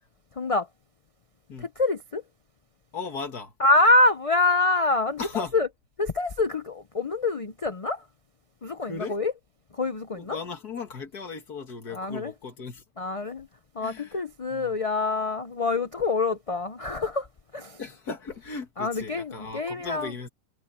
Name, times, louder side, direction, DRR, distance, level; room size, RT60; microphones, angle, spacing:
voice 1, 0.4-0.7 1.6-2.2 3.6-5.7 6.0-8.1 8.6-9.3 9.7-10.4 11.9-12.3 13.0-13.5 13.7-17.3 17.5-17.8 18.8-20.1, left 2 dB, 45° left, 0.4 m, -25 dB
voice 2, 2.9-3.5 5.2-5.6 8.8-9.2 10.2-12.8 13.8-14.2 14.5-14.8 17.8-20.3, left 5 dB, 75° left, 2.5 m, -36 dB
omnidirectional pair, 1.7 m